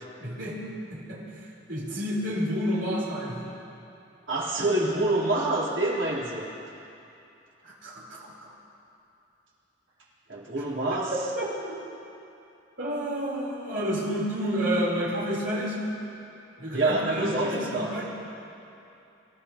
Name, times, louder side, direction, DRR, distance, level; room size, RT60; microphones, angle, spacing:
voice 1, 0.2-0.6 0.9-3.4 7.6-8.5 11.1-11.7 12.8-15.8 16.6-18.1, equal, 70° right, -6 dB, 3.7 m, -30 dB
voice 2, 4.3-6.5 10.3-11.1 16.7-17.9, right 2 dB, 85° right, -7 dB, 3.4 m, -26 dB
26.0 x 13.5 x 2.9 m, 2.7 s
head